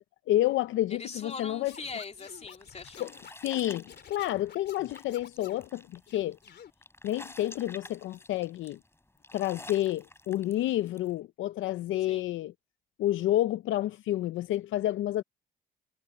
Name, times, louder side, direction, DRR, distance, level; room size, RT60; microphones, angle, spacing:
voice 1, 0.0-1.7 3.0-3.1 3.4-6.4 7.0-8.8 9.3-12.5 13.0-15.2, left 14 dB, 80° left, 0.6 m, -29 dB
voice 2, 0.9-3.1 12.1-12.2, left 4 dB, 35° left, 3.3 m, -41 dB
Scratching (performance technique), 1.7-5.7 6.1-6.7, left 8 dB, 60° left, 3.4 m, -50 dB
sound 1, 2.2-11.1, left 2 dB, 10° left, 5.3 m, -50 dB
cardioid pair, 90°, 20 cm